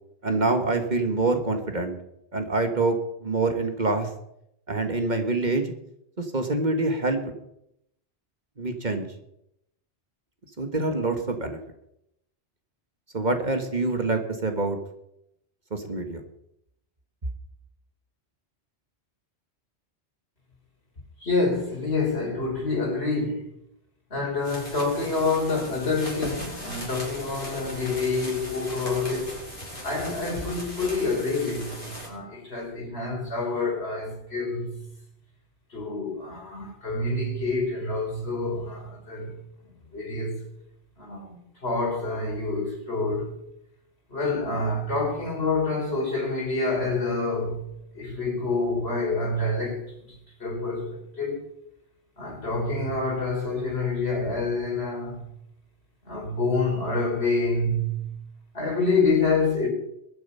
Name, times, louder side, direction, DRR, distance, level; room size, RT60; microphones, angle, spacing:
voice 1, 0.2-2.0 2.3-4.1 4.7-5.7 6.2-7.3 8.6-9.1 10.6-11.6 13.1-14.8 15.7-16.2, right 3 dB, 45° right, 1.7 m, -26 dB
voice 2, 21.2-23.6 24.1-29.4 29.8-34.8 35.7-39.4 39.9-40.4 41.0-43.3 44.1-47.7 47.9-51.4 52.2-55.2 56.0-58.2 58.5-59.7, left 3 dB, 70° left, 4.5 m, -27 dB
sound 1, 24.4-32.1, left 1 dB, 50° left, 5.7 m, -38 dB
22.0 x 9.2 x 5.6 m
omnidirectional pair, 1.1 m